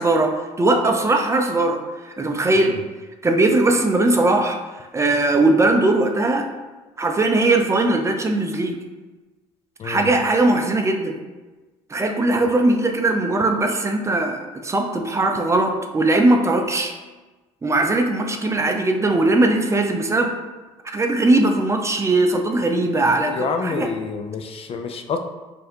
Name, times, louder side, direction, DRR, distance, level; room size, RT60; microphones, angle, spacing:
voice 1, 0.0-1.8 2.0-2.8 3.2-4.6 4.9-6.5 7.0-8.8 9.8-11.2 11.9-16.9 17.6-20.3 20.8-23.9, right 2 dB, 20° right, 4 dB, 0.5 m, -19 dB
voice 2, 23.3-25.2, left 5 dB, 40° left, 6 dB, 0.4 m, -28 dB
4.7 x 2.6 x 2.9 m, 1.2 s
hypercardioid pair, 70°, 15 cm